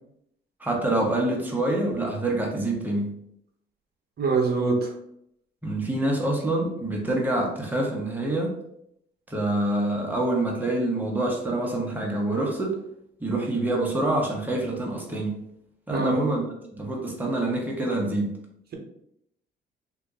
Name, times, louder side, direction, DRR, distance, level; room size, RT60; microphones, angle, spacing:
voice 1, 0.6-3.1 5.6-8.5 9.3-12.8 13.2-15.4 15.9-16.4 16.7-18.4, right 2 dB, 10° right, -2 dB, 1.1 m, -26 dB
voice 2, 4.2-4.9 15.9-16.2, right 3 dB, 55° right, 1 dB, 1.0 m, -23 dB
2.9 x 2.6 x 3.6 m, 0.75 s
cardioid pair, 90°, 20 cm